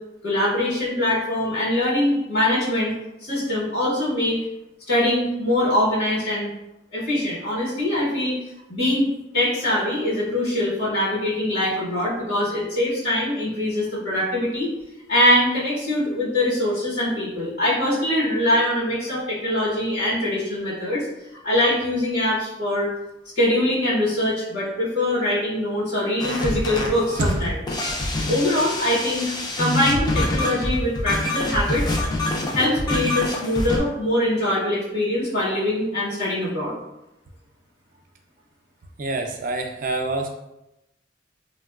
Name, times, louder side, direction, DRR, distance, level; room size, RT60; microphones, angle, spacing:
voice 1, 0.2-2.9 3.2-4.4 4.9-6.5 6.9-8.4 8.7-14.7 15.1-21.1 21.4-22.9 23.4-27.6 28.3-31.9 32.5-36.8, left 1 dB, 60° left, -9 dB, 1.0 m, -23 dB
sound 1, 26.2-33.8, left 1 dB, 20° left, 0.4 m, -26 dB
voice 2, 39.0-40.3, right 2 dB, 45° right, 3 dB, 0.4 m, -27 dB
3.5 x 2.2 x 2.3 m, 0.91 s
head